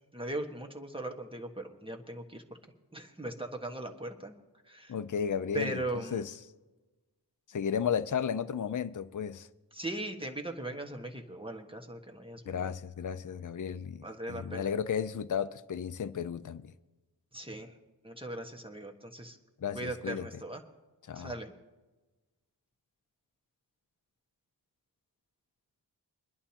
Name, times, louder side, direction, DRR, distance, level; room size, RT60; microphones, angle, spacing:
voice 1, 0.1-2.4 2.9-4.3 4.7-4.9 5.5-6.2 9.7-12.7 14.0-14.7 17.3-17.7 18.0-19.4 19.7-20.6 21.1-21.5, right 1 dB, 10° right, 1.3 m, -39 dB
voice 2, 4.9-5.8 6.1-6.3 7.5-9.5 12.5-16.7 19.6-20.3 21.1-21.3, left 7 dB, 45° left, 0.5 m, -33 dB
23.5 x 11.0 x 2.9 m
wide cardioid pair, 50°, 42 cm